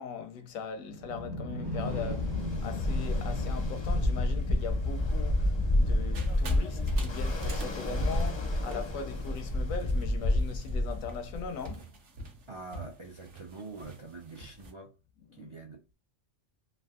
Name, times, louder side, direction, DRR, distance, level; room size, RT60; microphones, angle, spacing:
voice 1, 0.0-11.9 15.3-15.5, left 6 dB, 85° left, 1.1 m, -40 dB
sound 1, 0.9-5.7, left 2 dB, 25° right, 0.7 m, -37 dB
Ocean, 1.7-11.6, left 1 dB, 40° left, 0.4 m, -29 dB
sound 2, 6.1-14.7, right 2 dB, 65° right, 1.1 m, -45 dB
voice 2, 12.5-14.9 15.3-15.9, right 3 dB, 50° right, 0.3 m, -45 dB
3.3 x 2.5 x 2.3 m
omnidirectional pair, 1.4 m